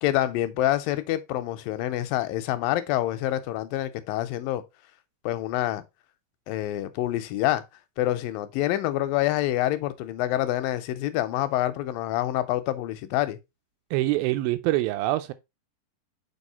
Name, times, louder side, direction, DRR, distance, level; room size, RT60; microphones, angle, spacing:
voice 1, 0.0-4.6 5.3-5.8 6.5-7.6 8.0-13.4, left 14 dB, 85° left, 2.3 m, -27 dB
voice 2, 13.9-15.3, right 17 dB, 90° right, 2.4 m, -25 dB
5.5 x 4.9 x 4.1 m
omnidirectional pair, 4.1 m